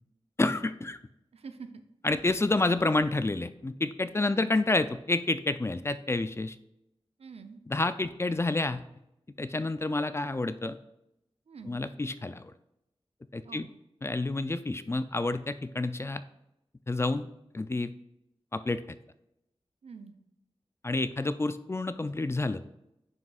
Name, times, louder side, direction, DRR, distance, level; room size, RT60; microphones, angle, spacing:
voice 1, 0.4-1.0 2.0-6.6 7.7-8.8 9.4-10.8 11.6-12.5 13.3-13.7 14.0-16.2 16.9-17.9 18.5-18.8 20.8-22.6, left 2 dB, 25° left, 12 dB, 0.3 m, -29 dB
voice 2, 1.3-1.8 4.3-4.5 7.2-7.6 11.5-11.8 13.4-13.7 19.8-20.1, right 5 dB, 80° right, 9 dB, 0.6 m, -46 dB
9.2 x 6.1 x 2.4 m, 0.85 s
wide cardioid pair, 85°, 10 cm